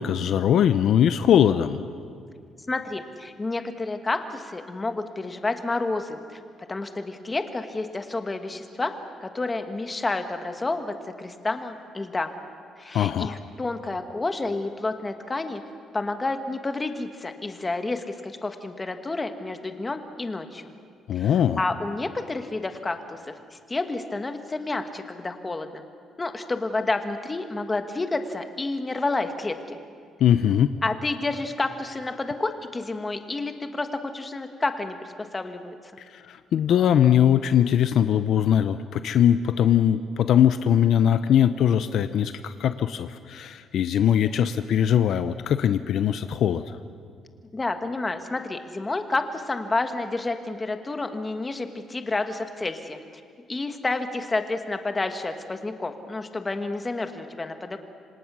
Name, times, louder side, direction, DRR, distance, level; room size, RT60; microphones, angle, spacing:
voice 1, 0.0-1.8 12.9-13.4 21.1-21.6 30.2-30.7 36.0-46.8, left 9 dB, 60° left, 11 dB, 0.7 m, -21 dB
voice 2, 2.7-6.2 6.7-8.9 9.2-12.3 12.8-15.6 15.9-20.7 21.1-21.3 21.6-23.2 23.5-25.8 26.2-29.8 30.8-33.9 34.1-35.8 47.5-53.0 53.5-57.8, left 3 dB, 15° left, 7 dB, 1.4 m, -30 dB
27.5 x 25.5 x 6.2 m, 2.2 s
cardioid pair, 160°, 0 cm